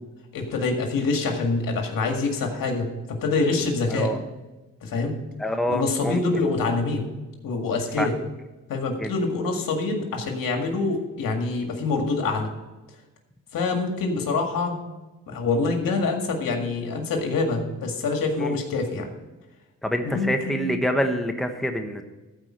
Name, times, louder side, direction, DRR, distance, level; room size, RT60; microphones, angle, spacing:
voice 1, 0.3-4.1 4.8-5.1 5.7-7.1 7.4-8.1 8.7-12.5 13.5-14.8 15.3-19.1 20.0-20.8, left 3 dB, 80° left, 3 dB, 2.0 m, -25 dB
voice 2, 5.4-6.2 8.0-8.1 9.0-9.1 18.4-18.5 19.8-22.0, equal, ahead, 5 dB, 1.1 m, -26 dB
14.0 x 4.8 x 7.5 m, 1.1 s
cardioid pair, 90°, 33 cm